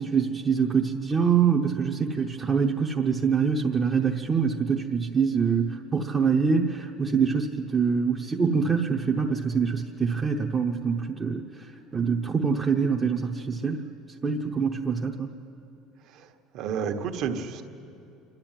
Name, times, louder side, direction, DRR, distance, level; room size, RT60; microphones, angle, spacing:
voice 1, 0.0-11.7 11.9-13.8 14.2-15.3, right 6 dB, 15° right, -1 dB, 0.9 m, -25 dB
voice 2, 16.5-17.6, right 7 dB, 55° right, 5 dB, 1.4 m, -30 dB
27.5 x 12.0 x 9.1 m, 2.7 s
cardioid pair, 160°, 0 cm